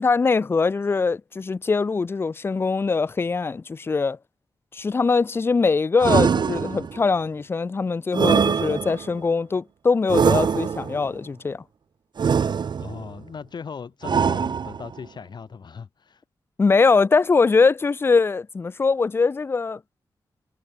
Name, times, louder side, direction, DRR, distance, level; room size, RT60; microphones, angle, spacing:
voice 1, 0.0-4.2 4.7-11.6 16.6-19.8, left 4 dB, 25° left, 0.4 m, -22 dB
sound 1, 6.0-7.1 8.1-9.2 10.1-11.0 12.2-13.1 14.0-15.0, right 6 dB, 60° right, 1.3 m, -22 dB
voice 2, 12.8-16.2, left 6 dB, 55° left, 6.1 m, -38 dB
wide cardioid pair, 130°, 9 cm